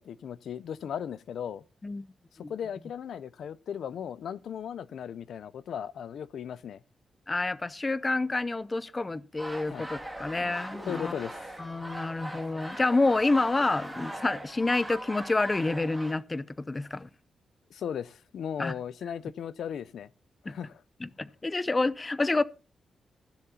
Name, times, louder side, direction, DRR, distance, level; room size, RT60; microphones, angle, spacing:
voice 1, 0.0-1.6 2.5-6.8 9.7-9.9 10.9-11.5 17.7-20.1 20.4-20.8, left 8 dB, 75° left, 0.6 m, -37 dB
voice 2, 7.3-11.1 11.6-17.1 18.6-18.8 20.5-20.6 21.0-22.4, left 2 dB, 20° left, 0.5 m, -28 dB
sound 1, 9.4-16.1, right 1 dB, ahead, 2.4 m, -40 dB
14.5 x 12.5 x 2.8 m
wide cardioid pair, 175°, 0 cm